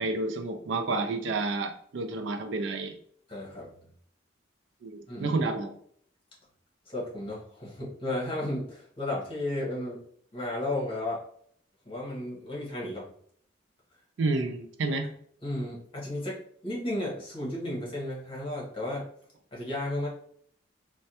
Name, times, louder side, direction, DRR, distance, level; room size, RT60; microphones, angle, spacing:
voice 1, 0.0-2.9 4.8-5.7 14.2-15.1, right 3 dB, 70° right, 6 dB, 0.4 m, -30 dB
voice 2, 3.3-3.7 5.1-5.4 6.9-10.0 10.3-11.2 11.8-13.1 15.4-19.1 19.5-20.1, left 1 dB, 30° left, -4 dB, 1.1 m, -33 dB
3.3 x 2.2 x 2.7 m, 0.62 s
head